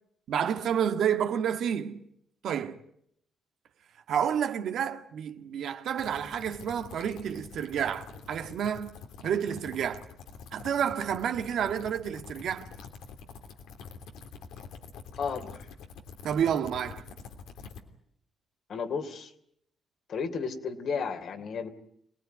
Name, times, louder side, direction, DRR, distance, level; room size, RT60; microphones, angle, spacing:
voice 1, 0.3-2.0 2.4-2.8 4.1-10.0 10.5-12.7 16.2-17.0, right 8 dB, 70° right, 1.7 m, -30 dB
sound 1, 6.0-17.8, left 5 dB, 90° left, 3.2 m, -46 dB
voice 2, 15.2-15.7 18.7-19.3 20.1-21.7, left 5 dB, 60° left, 3.1 m, -33 dB
26.5 x 19.0 x 9.4 m
cardioid pair, 90°, 0 cm